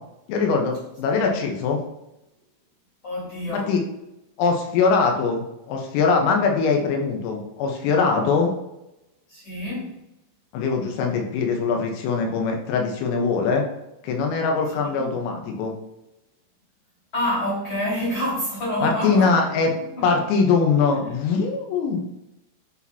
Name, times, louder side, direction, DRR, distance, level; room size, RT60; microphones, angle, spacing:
voice 1, 0.3-1.8 3.5-3.8 4.4-8.5 10.5-13.6 14.0-15.7 18.8-19.7 20.0-22.0, left 5 dB, 90° left, 2 dB, 3.7 m, -22 dB
voice 2, 3.0-3.7 9.3-10.0 14.9-15.1 17.1-19.3 19.8-20.1, left 1 dB, 40° left, -5 dB, 2.0 m, -27 dB
12.0 x 4.2 x 2.8 m, 0.89 s
omnidirectional pair, 5.7 m